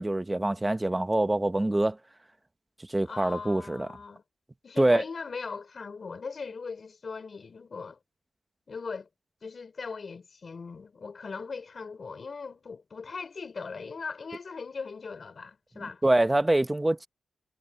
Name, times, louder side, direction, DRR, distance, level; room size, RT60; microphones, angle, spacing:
voice 1, 0.0-2.0 2.9-3.9 4.8-5.0 16.0-17.1, right 1 dB, 10° right, 0.9 m, -25 dB
voice 2, 3.0-4.2 4.6-8.0 8.7-9.1 9.4-16.0, left 4 dB, 35° left, 4.2 m, -39 dB
wide cardioid pair, 165°, 0 cm